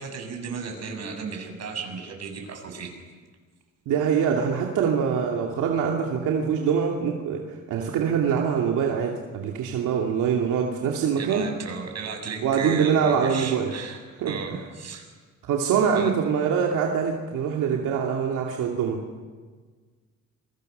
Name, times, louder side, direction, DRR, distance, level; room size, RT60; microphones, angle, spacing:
voice 1, 0.0-2.9 11.1-15.1 15.9-16.1, right 5 dB, 60° right, 3 dB, 7.2 m, -35 dB
voice 2, 3.9-11.5 12.4-13.7 14.2-14.6 15.4-19.0, right 7 dB, 85° right, 0 dB, 2.7 m, -24 dB
27.5 x 23.5 x 6.8 m, 1.5 s
cardioid pair, 90°, 30 cm